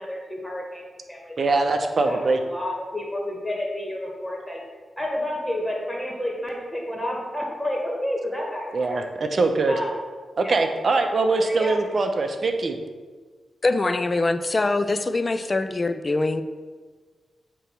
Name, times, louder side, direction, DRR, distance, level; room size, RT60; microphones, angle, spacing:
voice 1, 0.0-1.4 1.8-4.6 5.0-9.0 9.7-9.9 10.4-10.9 11.4-11.7, left 1 dB, 10° left, -2 dB, 2.0 m, -30 dB
voice 2, 1.4-2.4 8.7-9.7 10.4-12.8, right 3 dB, 55° right, 5 dB, 0.8 m, -22 dB
voice 3, 13.6-16.4, left 2 dB, 35° left, 11 dB, 0.5 m, -23 dB
8.0 x 3.1 x 6.0 m, 1.5 s
cardioid pair, 65°, 0 cm